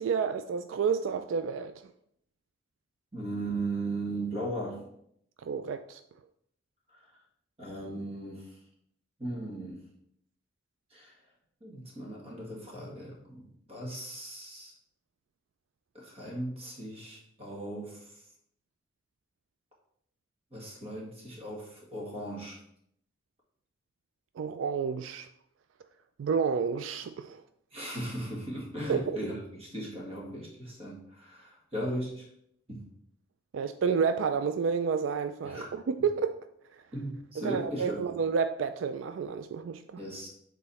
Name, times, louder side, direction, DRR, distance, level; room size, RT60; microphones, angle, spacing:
voice 1, 0.0-1.7 5.4-6.0 24.4-25.3 26.2-27.4 28.9-29.2 33.5-36.4 37.4-40.0, right 6 dB, 80° right, 0.3 m, -30 dB
voice 2, 3.1-4.9 6.9-7.0 7.6-8.6 9.2-9.9 10.9-11.1 11.6-14.7 15.9-18.2 20.5-22.6 27.7-32.3 32.7-32.8 35.4-35.7 36.9-38.1 39.9-40.3, right 1 dB, 30° right, 1.8 m, -37 dB
6.8 x 4.0 x 4.1 m
head